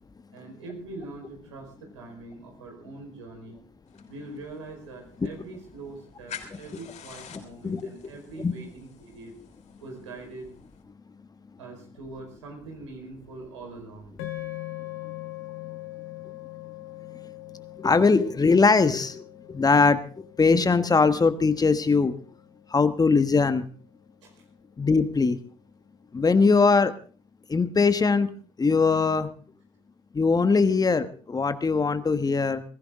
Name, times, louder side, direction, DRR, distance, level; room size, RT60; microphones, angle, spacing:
voice 1, 0.3-3.6 4.0-9.3 9.8-10.5 11.6-14.2 24.2-24.4, right 3 dB, 85° right, 1 dB, 4.7 m, -43 dB
sound 1, 3.9-10.8, left 8 dB, 50° left, 5.9 m, -48 dB
voice 2, 7.3-7.9 8.4-8.5 17.8-22.1 22.7-23.7 24.8-25.4 26.1-26.9 27.5-28.3 28.6-29.3 30.1-32.6, left 4 dB, 25° left, 12 dB, 1.4 m, -21 dB
sound 2, 14.2-22.6, left 18 dB, 75° left, 2.1 m, -42 dB
21.0 x 15.5 x 3.8 m, 0.41 s
hypercardioid pair, 60°, 15 cm